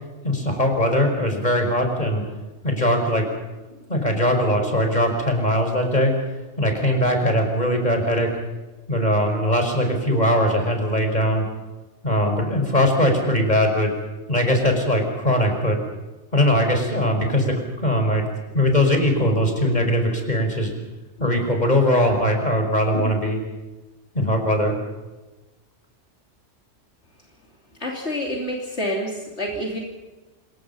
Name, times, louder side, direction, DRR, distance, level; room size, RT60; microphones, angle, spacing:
voice 1, 0.2-2.2 2.6-3.3 3.9-6.1 6.6-8.3 8.9-11.5 12.0-13.9 14.3-15.8 16.3-18.2 18.5-20.7 21.2-23.4 24.1-24.7, equal, 35° left, 4 dB, 5.5 m, -20 dB
voice 2, 27.8-29.8, equal, 70° left, -1 dB, 3.2 m, -28 dB
27.5 x 22.5 x 5.6 m, 1.2 s
omnidirectional pair, 1.2 m